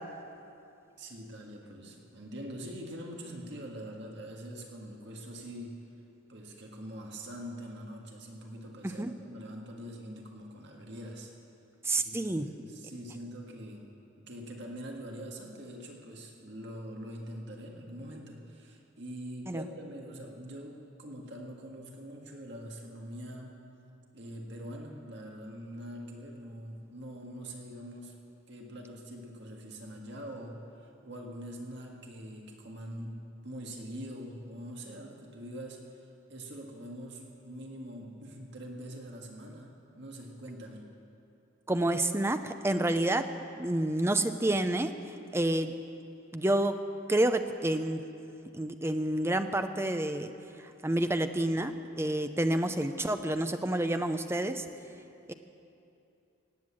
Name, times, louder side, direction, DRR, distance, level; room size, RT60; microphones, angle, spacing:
voice 1, 1.0-5.8 6.3-11.4 12.0-23.6 24.1-28.2 28.5-40.9, equal, 60° right, 0 dB, 1.7 m, -44 dB
voice 2, 11.8-12.5 19.5-19.6 41.7-43.2 43.6-44.9 45.3-45.7 46.3-46.7 47.1-48.0 48.5-50.3 50.8-54.6 55.3-55.4, right 1 dB, 10° right, 8 dB, 0.6 m, -29 dB
18.0 x 8.1 x 8.6 m, 2.6 s
head